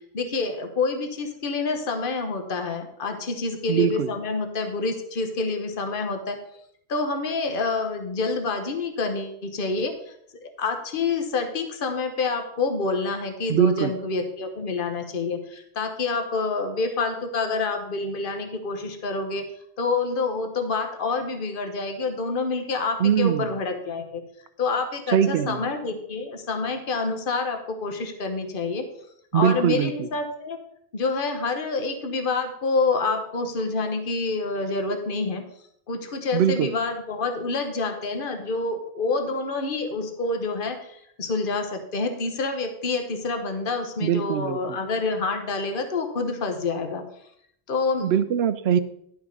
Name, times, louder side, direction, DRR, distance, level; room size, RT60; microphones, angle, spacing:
voice 1, 0.1-6.4 6.9-10.2 10.4-19.4 19.8-24.2 24.6-28.8 29.3-30.6 30.9-35.4 35.9-47.0 47.7-48.1, left 3 dB, 50° left, 6 dB, 1.3 m, -27 dB
voice 2, 3.7-4.1 13.5-13.9 23.0-23.5 25.1-25.6 29.3-30.1 36.3-36.7 44.0-44.8 48.0-48.8, right 9 dB, 75° right, 13 dB, 0.8 m, -22 dB
11.0 x 6.0 x 5.2 m, 0.70 s
omnidirectional pair, 1.1 m